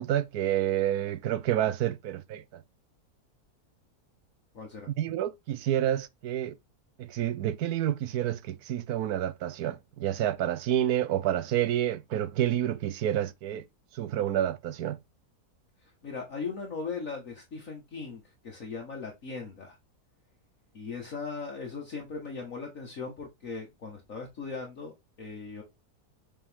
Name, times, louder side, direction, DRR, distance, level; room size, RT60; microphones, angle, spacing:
voice 1, 0.0-2.6 4.9-6.5 7.0-13.6 13.9-15.0, right 11 dB, 80° right, 1.2 m, -29 dB
voice 2, 4.5-4.9 16.0-19.8 20.7-24.9 25.2-25.6, left 4 dB, 60° left, 2.1 m, -38 dB
7.2 x 5.1 x 3.6 m
omnidirectional pair, 1.6 m